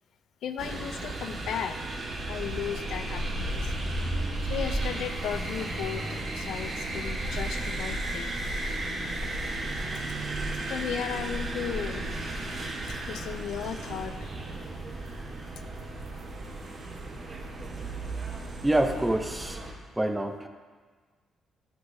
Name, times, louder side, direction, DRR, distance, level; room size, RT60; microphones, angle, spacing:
voice 1, 0.4-1.8 2.3-3.8 4.4-6.1 6.3-8.3 10.7-12.1 12.9-14.3, left 8 dB, 80° left, 9 dB, 0.4 m, -35 dB
sound 1, 0.6-19.7, right 2 dB, 45° right, 1.2 m, -36 dB
sound 2, 2.1-14.6, right 1 dB, 80° right, 2.1 m, -36 dB
voice 2, 18.6-19.6 20.0-20.5, right 1 dB, 10° right, 6 dB, 0.6 m, -26 dB
11.0 x 5.9 x 2.7 m, 1.5 s
cardioid pair, 105°, 0 cm